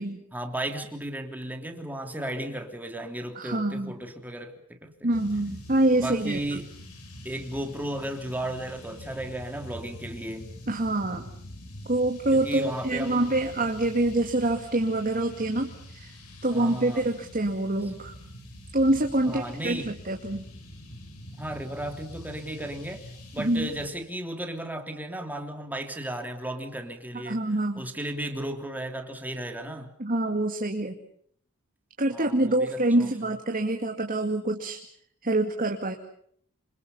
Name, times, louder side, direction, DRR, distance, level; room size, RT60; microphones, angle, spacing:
voice 1, 0.3-5.1 6.0-6.7 7.2-10.5 12.3-13.6 16.5-17.1 19.2-19.9 21.4-23.0 23.3-27.4 27.8-29.9 32.1-33.1, right 1 dB, 10° right, 4 dB, 3.2 m, -35 dB
voice 2, 3.4-3.9 5.0-6.6 10.7-11.3 11.9-16.1 16.4-18.1 18.7-20.4 23.4-23.7 27.3-27.8 30.0-31.0 32.0-34.8 35.2-35.9, right 1 dB, 40° right, 3 dB, 2.3 m, -26 dB
sound 1, 5.1-23.9, left 1 dB, 85° left, 7.4 m, -45 dB
27.0 x 27.0 x 5.6 m, 0.63 s
head